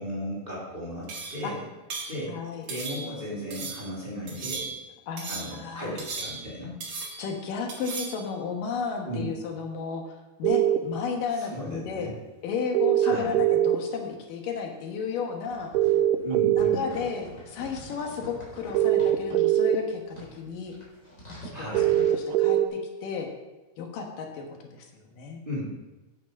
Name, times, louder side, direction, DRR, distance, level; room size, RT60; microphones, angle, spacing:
voice 1, 0.0-1.6 2.1-2.4 2.6-4.7 5.3-6.8 9.1-9.3 11.4-12.1 13.0-13.4 16.2-16.8 21.5-22.0 25.5-25.7, equal, 15° right, -7 dB, 2.7 m, -35 dB
sound 1, 1.1-1.5 1.9-2.2 2.7-3.2 3.5-3.9 4.3-4.9 5.2-5.6 6.0-6.6 6.8-7.3 7.7-8.2, right 4 dB, 55° right, 3.1 m, -36 dB
voice 2, 2.3-2.6 5.1-5.9 7.2-12.1 12.4-15.7 16.6-20.7 21.4-23.3 23.8-25.4, left 5 dB, 80° left, 2 dB, 3.0 m, -33 dB
sound 2, 10.4-10.8 12.7-13.8 15.7-16.8 18.7-19.8 21.7-22.7, right 12 dB, 80° right, 2.1 m, -21 dB
sound 3, 15.5-19.6 20.0-22.1, right 1 dB, 20° left, 4.1 m, -45 dB
9.1 x 8.4 x 5.2 m, 1.1 s
omnidirectional pair, 3.8 m